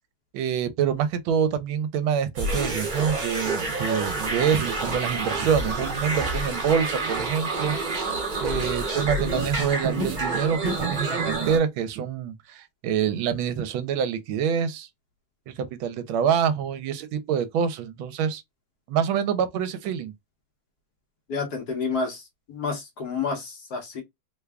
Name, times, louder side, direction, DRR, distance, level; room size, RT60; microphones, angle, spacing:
voice 1, 0.3-14.9 15.5-18.4 18.9-20.1, right 8 dB, 75° right, 1.3 m, -26 dB
sound 1, 2.4-11.6, right 3 dB, 35° right, 0.8 m, -28 dB
voice 2, 21.3-24.0, left 4 dB, 60° left, 1.2 m, -30 dB
3.5 x 2.2 x 3.3 m
omnidirectional pair, 2.3 m